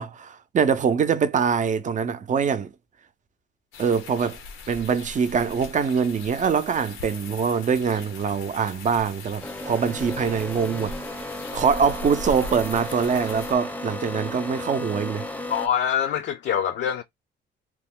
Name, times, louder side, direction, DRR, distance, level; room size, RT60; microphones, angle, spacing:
voice 1, 0.0-2.7 3.8-4.4 4.7-11.0 11.5-15.3, right 6 dB, 40° right, 0.5 m, -24 dB
sound 1, 3.7-13.5, left 3 dB, 90° left, 0.7 m, -40 dB
sound 2, 9.4-15.7, left 1 dB, 10° left, 0.6 m, -34 dB
voice 2, 15.5-17.0, left 9 dB, 60° left, 0.4 m, -24 dB
2.9 x 2.1 x 3.5 m
cardioid pair, 90°, 20 cm